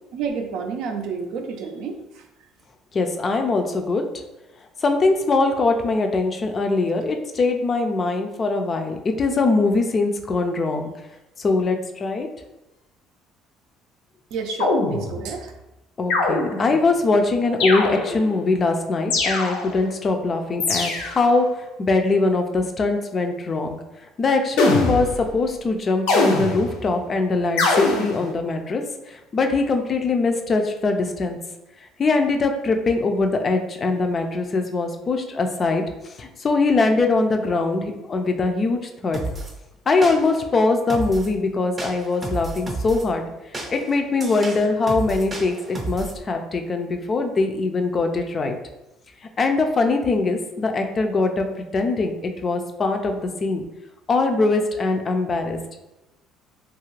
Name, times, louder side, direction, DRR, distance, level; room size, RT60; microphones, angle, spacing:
voice 1, 0.1-2.2 14.3-15.5, right 5 dB, 75° right, 4 dB, 0.4 m, -30 dB
voice 2, 2.9-4.0 4.8-10.9 11.4-12.3 16.0-21.5 21.8-23.8 24.2-31.4 32.0-35.8 36.2-39.2 39.9-43.2 43.7-48.6 49.4-51.5 51.7-53.6 54.1-55.6, left 3 dB, 35° left, 5 dB, 0.4 m, -22 dB
sound 1, 14.6-15.4 16.1-16.8 17.6-18.4 19.1-19.9 20.6-21.3 24.6-25.3 26.1-26.9 27.6-28.3, left 3 dB, 90° left, 0.5 m, -23 dB
sound 2, 39.1-39.5 40.0-40.5 40.9-41.3 41.8-43.1 43.5-46.2, right 2 dB, 25° right, 0.6 m, -32 dB
2.6 x 2.4 x 3.1 m, 0.97 s
cardioid pair, 115°, 0 cm